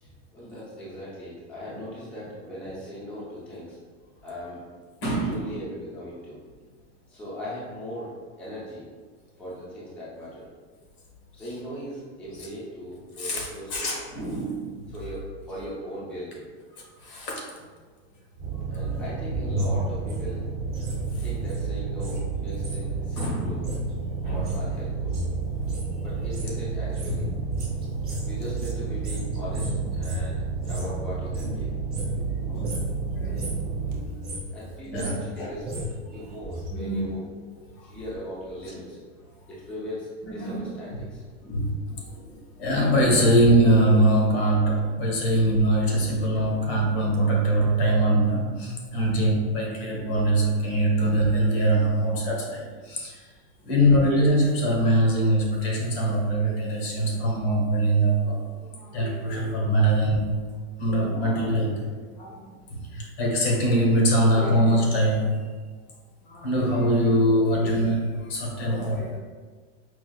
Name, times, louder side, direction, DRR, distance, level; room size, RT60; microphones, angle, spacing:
voice 1, 0.0-3.8 4.2-4.6 5.2-6.4 7.1-8.1 8.4-8.8 9.4-10.5 11.3-13.9 14.9-16.5 18.7-20.5 21.2-23.7 24.2-25.2 26.0-27.7 28.3-30.4 30.6-31.9 32.2-32.9 34.1-34.2 34.5-37.2 37.8-39.0 39.5-41.6 42.0-42.5 46.5-46.7 47.1-47.5 49.9-50.1 53.6-53.8, equal, 5° left, -9 dB, 0.5 m, -39 dB
voice 2, 5.0-5.4 13.2-13.5 13.7-14.7 17.1-17.4 23.2-23.5 24.3-24.5 27.2-27.3 32.5-32.7 33.2-34.1 34.9-35.1 35.4-35.5 36.7-37.1 40.4-40.7 42.6-53.1 53.7-58.4 58.7-60.4 60.8-61.8 62.2-62.4 62.9-65.4 66.3-69.2, right 1 dB, 70° left, -2 dB, 1.1 m, -23 dB
sound 1, 18.4-34.0, right 5 dB, 45° right, 0.7 m, -31 dB
sound 2, 18.8-22.2 22.5-31.0 31.2-32.3 32.6-32.9 33.2-33.7 34.1-36.7 37.0-37.1, equal, 15° right, 0.9 m, -34 dB
sound 3, 47.5-51.1, right 1 dB, 85° right, 0.6 m, -39 dB
4.6 x 2.4 x 2.2 m, 1.5 s
supercardioid pair, 165°, 32 cm